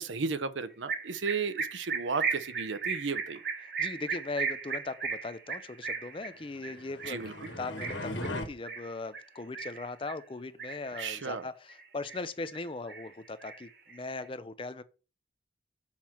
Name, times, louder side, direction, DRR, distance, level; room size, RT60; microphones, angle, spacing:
voice 1, 0.0-3.4 7.1-7.3 11.0-11.4, right 4 dB, 80° right, 0.8 m, -34 dB
sound 1, 0.9-10.2 10.6-11.3 11.7-12.6 12.9-14.2, right 5 dB, 55° right, 1.2 m, -36 dB
voice 2, 3.6-14.8, left 3 dB, 25° left, 0.5 m, -39 dB
sound 2, 6.5-8.5, left 1 dB, 75° left, 1.6 m, -38 dB
7.3 x 4.3 x 5.9 m
head